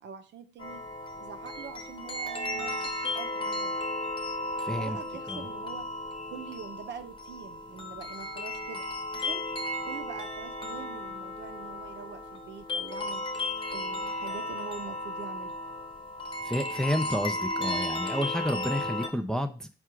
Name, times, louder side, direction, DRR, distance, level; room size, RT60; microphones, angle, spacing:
voice 1, 0.0-0.8 1.2-3.8 4.8-5.8 6.3-8.8 9.1-9.4 9.9-13.2 13.7-15.5, right 7 dB, 65° right, 8 dB, 0.6 m, -44 dB
sound 1, 0.6-19.1, left 1 dB, 25° left, 0.9 m, -34 dB
voice 2, 4.6-5.0 5.3-5.5 16.4-19.7, equal, 5° left, 7 dB, 0.4 m, -30 dB
4.6 x 2.4 x 4.5 m, 0.36 s
cardioid pair, 90°, 20 cm